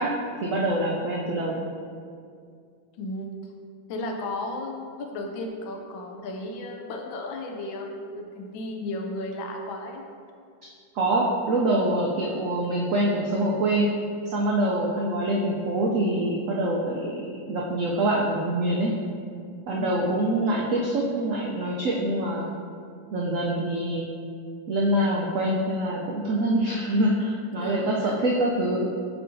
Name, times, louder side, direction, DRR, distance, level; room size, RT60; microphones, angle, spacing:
voice 1, 0.0-1.6 10.9-13.9 14.3-18.9 19.7-22.5 23.1-24.1 24.7-28.9, right 1 dB, 85° right, -2 dB, 0.7 m, -25 dB
voice 2, 3.0-3.3 3.9-10.0 19.7-20.0 27.6-28.2, left 1 dB, 90° left, 2 dB, 1.5 m, -34 dB
7.5 x 4.7 x 2.7 m, 2.2 s
omnidirectional pair, 2.1 m